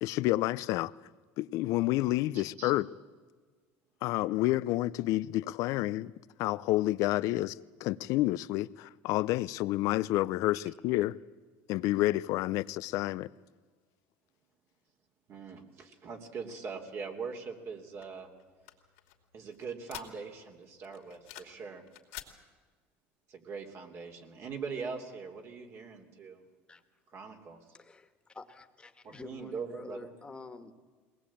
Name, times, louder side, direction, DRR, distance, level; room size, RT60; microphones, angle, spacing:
voice 1, 0.0-0.9 1.4-2.9 4.0-6.1 6.4-11.2 11.7-13.3, left 17 dB, 65° left, 0.6 m, -29 dB
voice 2, 2.3-2.7 15.3-18.3 19.3-21.8 23.3-26.4 27.1-27.6 29.0-30.1, right 5 dB, 45° right, 3.1 m, -42 dB
sound 1, 18.0-20.5 20.8-21.6 21.9-22.3, left 16 dB, 90° left, 2.8 m, -48 dB
voice 3, 27.7-30.7, left 3 dB, 15° left, 1.8 m, -48 dB
22.0 x 19.0 x 8.7 m
supercardioid pair, 110°, 6 cm